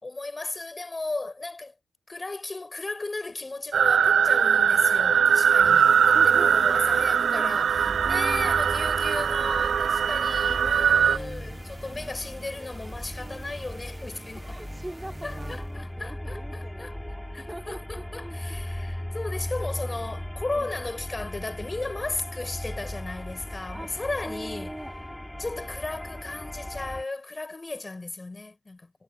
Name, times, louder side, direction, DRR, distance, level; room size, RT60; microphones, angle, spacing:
voice 1, 0.0-1.7 2.1-14.6 15.2-16.9 17.3-24.7 25.4-28.9, left 3 dB, 30° left, 4.6 m, -35 dB
sound 1, 3.7-11.2, right 7 dB, 65° right, 0.3 m, -21 dB
sound 2, 5.6-16.0, right 3 dB, 30° right, 1.1 m, -44 dB
voice 2, 6.1-7.1 8.0-8.6 11.9-12.6 14.3-18.8 20.6-20.7 23.7-23.9 24.2-25.0, right 1 dB, 10° right, 2.9 m, -42 dB
sound 3, 7.7-27.0, left 1 dB, 10° left, 2.4 m, -37 dB
supercardioid pair, 55°, 0 cm